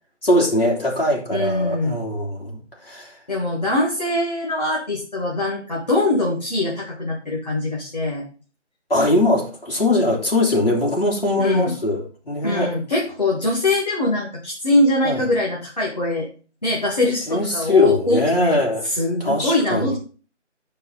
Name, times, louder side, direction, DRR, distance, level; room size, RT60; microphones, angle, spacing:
voice 1, 0.2-3.2 8.9-12.7 15.0-15.2 17.3-18.9 19.2-19.9, left 1 dB, 50° left, -2 dB, 3.1 m, -21 dB
voice 2, 1.3-2.0 3.3-8.2 11.4-11.7 12.4-16.3 16.6-20.0, left 2 dB, 35° left, -4 dB, 1.8 m, -22 dB
11.0 x 4.8 x 4.0 m, 0.37 s
figure-of-eight pair, 180°, 36 cm